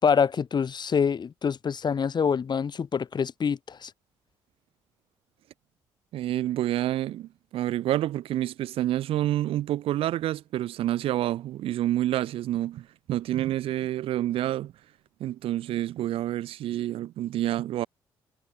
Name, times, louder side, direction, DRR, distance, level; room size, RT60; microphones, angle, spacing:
voice 1, 0.0-3.9, left 6 dB, 50° left, 4.9 m, -25 dB
voice 2, 6.1-14.7 15.2-17.9, right 13 dB, 75° right, 1.7 m, -28 dB
supercardioid pair, 60°, 10 cm